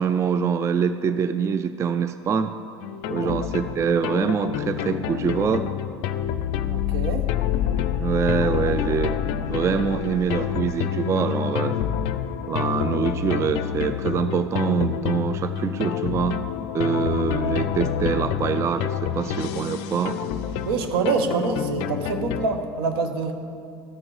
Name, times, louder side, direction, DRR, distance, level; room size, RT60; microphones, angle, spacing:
voice 1, 0.0-2.5 3.1-5.7 8.0-11.8 12.5-16.4 16.7-20.2, right 6 dB, 20° right, 11 dB, 0.3 m, -24 dB
sound 1, 2.8-22.5, left 10 dB, 50° left, 0.5 m, -27 dB
voice 2, 6.7-7.3 20.6-23.3, right 4 dB, 65° right, 6 dB, 0.9 m, -25 dB
13.5 x 6.1 x 4.7 m, 2.3 s
figure-of-eight pair, 75°, 13 cm